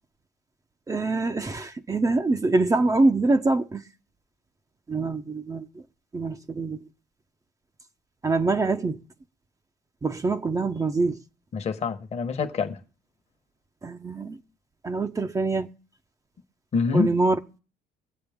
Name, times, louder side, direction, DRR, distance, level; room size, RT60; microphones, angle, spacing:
voice 1, 0.9-3.8 4.9-5.8 6.1-6.9 8.2-9.0 10.0-11.2 13.8-14.4 14.8-15.7 16.9-17.4, right 3 dB, 20° right, 0.7 m, -24 dB
voice 2, 11.5-12.8 16.7-17.1, left 5 dB, 40° left, 1.1 m, -26 dB
22.0 x 7.8 x 3.5 m
cardioid pair, 110°, 17 cm